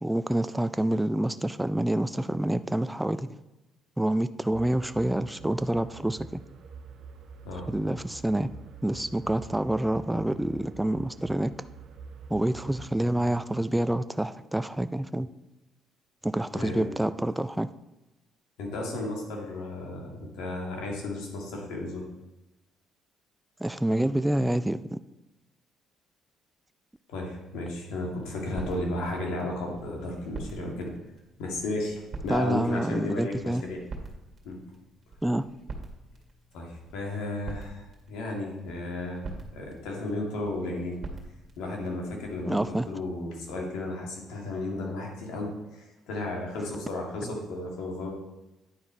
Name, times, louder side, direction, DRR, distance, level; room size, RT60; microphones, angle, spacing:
voice 1, 0.0-3.3 4.0-6.4 7.7-8.5 8.8-11.5 12.3-15.3 16.2-17.7 23.6-25.0 32.3-33.6 35.2-35.5 42.5-42.9, right 1 dB, 5° right, 12 dB, 0.3 m, -27 dB
sound 1, 4.5-12.9, right 5 dB, 65° right, 0.8 m, -46 dB
voice 2, 16.5-16.9 18.6-22.0 27.1-30.9 31.4-33.8 34.4-34.6 36.5-41.0 41.6-48.1, left 2 dB, 85° left, -1 dB, 2.1 m, -34 dB
sound 2, 28.1-42.8, right 3 dB, 45° right, 2.2 m, -45 dB
10.5 x 4.6 x 4.4 m, 1.0 s
cardioid pair, 90°, 0 cm